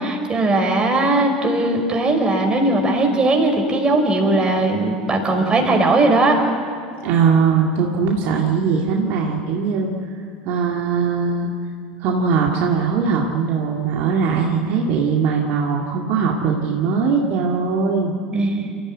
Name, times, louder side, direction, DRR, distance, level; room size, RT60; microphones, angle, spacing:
voice 1, 0.0-6.3 18.3-18.7, right 2 dB, 20° right, 2 dB, 5.4 m, -18 dB
voice 2, 7.0-9.9 10.4-11.5 12.0-18.1, right 5 dB, 55° right, 0 dB, 2.1 m, -20 dB
29.5 x 14.5 x 8.9 m, 2.3 s
hypercardioid pair, 75°, 4 cm